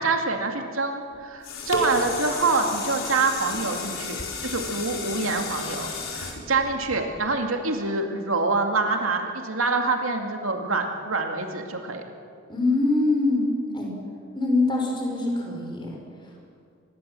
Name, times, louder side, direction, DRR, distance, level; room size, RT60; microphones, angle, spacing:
voice 1, 0.0-12.0, right 3 dB, 90° right, 4 dB, 2.4 m, -26 dB
sound 1, 1.1-7.5 8.0-8.1, left 3 dB, 80° left, 4.4 m, -33 dB
voice 2, 12.5-13.5 13.7-13.9 14.3-15.9, left 2 dB, 25° left, 0 dB, 5.2 m, -23 dB
25.0 x 21.0 x 7.7 m, 2.4 s
head